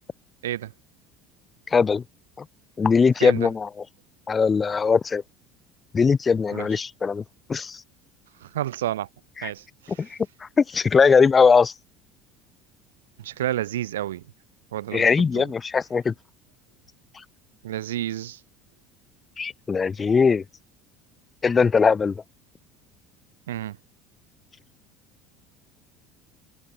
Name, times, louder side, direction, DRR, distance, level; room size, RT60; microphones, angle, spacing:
voice 1, 1.7-2.0 2.8-3.7 4.3-5.2 5.9-7.2 7.5-7.8 9.4-9.5 10.0-10.2 10.6-11.7 14.9-16.1 19.4-20.4 21.4-22.2, left 5 dB, 25° left, 1.6 m, -20 dB
voice 2, 8.4-9.1 9.4-10.1 13.2-14.2 14.7-15.1 15.3-15.5 17.6-18.4 23.5-23.8, right 13 dB, 90° right, 6.6 m, -30 dB
hypercardioid pair, 80°, 0 cm